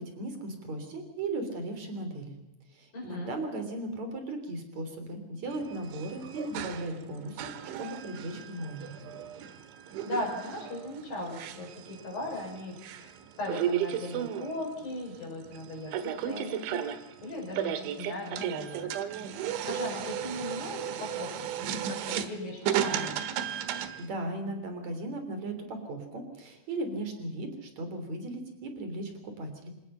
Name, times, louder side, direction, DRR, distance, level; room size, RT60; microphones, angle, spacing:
voice 1, 0.0-2.4 2.7-7.5 7.8-8.9 24.0-29.7, right 2 dB, 40° right, 7 dB, 4.2 m, -37 dB
voice 2, 2.9-3.4 10.0-13.1 13.4-16.8 17.2-19.0 19.7-23.2, left 1 dB, 50° left, -1 dB, 7.5 m, -38 dB
sound 1, 5.5-24.1, right 9 dB, 80° right, 3.6 m, -35 dB
27.0 x 18.0 x 5.7 m, 0.91 s
omnidirectional pair, 5.4 m